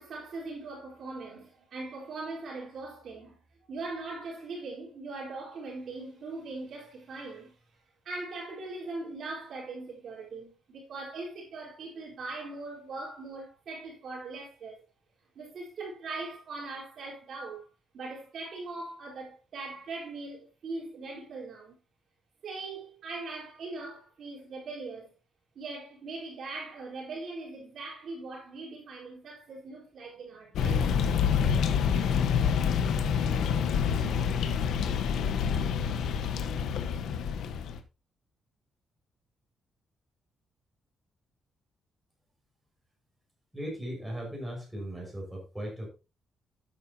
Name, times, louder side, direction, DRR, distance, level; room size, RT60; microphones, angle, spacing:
voice 1, 0.0-3.4 3.7-7.6 8.0-14.9 15.3-17.7 17.9-21.8 22.4-25.1 25.5-31.7, right 3 dB, 50° right, 4.3 m, -40 dB
sound 1, 30.6-37.8, left 7 dB, 75° left, 1.3 m, -27 dB
voice 2, 43.5-45.9, equal, 5° right, 6.0 m, -37 dB
12.5 x 9.4 x 2.9 m
cardioid pair, 175°, 0 cm